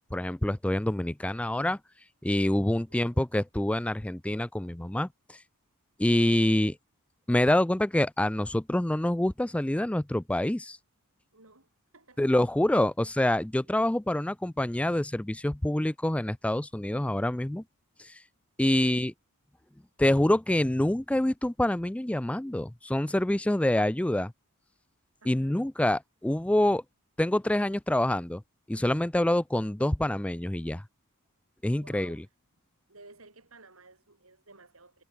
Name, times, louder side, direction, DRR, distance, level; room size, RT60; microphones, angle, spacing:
voice 1, 0.0-1.8 2.2-5.4 6.0-6.7 7.3-10.8 12.2-17.6 18.0-18.2 18.6-19.1 20.0-24.3 25.3-26.8 27.2-28.4 28.7-30.8 31.6-32.2, left 1 dB, 5° left, 0.4 m, -26 dB
voice 2, 11.3-12.2 18.6-19.0 25.2-25.6 31.8-32.3 32.9-35.0, right 3 dB, 70° right, 7.1 m, -55 dB
head